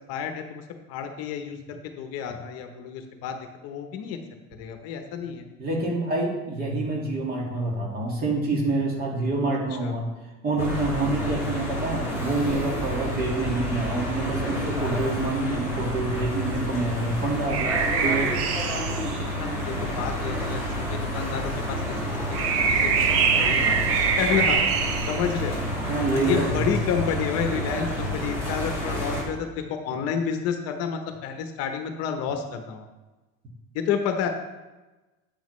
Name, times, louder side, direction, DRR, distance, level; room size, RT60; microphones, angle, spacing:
voice 1, 0.1-0.6 0.9-3.4 3.6-4.2 4.6-5.4 9.8-9.9 19.4-20.6 20.9-21.9 22.3-23.8 24.2-24.6 25.1-25.6 26.1-32.9 33.7-34.3, left 7 dB, 55° left, 6 dB, 0.9 m, -30 dB
voice 2, 5.6-10.1 10.4-18.4 25.9-27.1, right 2 dB, 30° right, -1 dB, 1.9 m, -27 dB
sound 1, 10.6-29.2, equal, 10° right, 2.4 m, -30 dB
sound 2, 17.0-26.0, right 6 dB, 50° right, 0.7 m, -26 dB
8.8 x 7.2 x 3.1 m, 1.1 s
cardioid pair, 150°, 30 cm